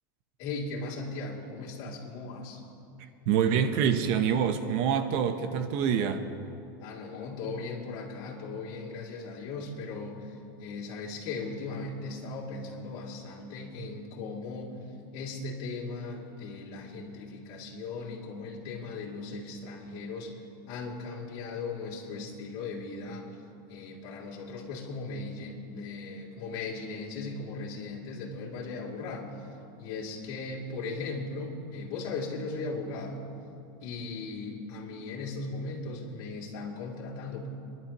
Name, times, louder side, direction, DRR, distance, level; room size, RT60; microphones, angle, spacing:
voice 1, 0.4-2.6 6.8-14.8 15.1-20.4 20.7-23.3 23.7-29.3 29.8-33.2 33.8-37.5, left 3 dB, 50° left, -3 dB, 2.6 m, -38 dB
voice 2, 3.3-6.2, right 7 dB, 50° right, 8 dB, 0.8 m, -26 dB
29.0 x 11.0 x 3.0 m, 2.6 s
supercardioid pair, 155°, 11 cm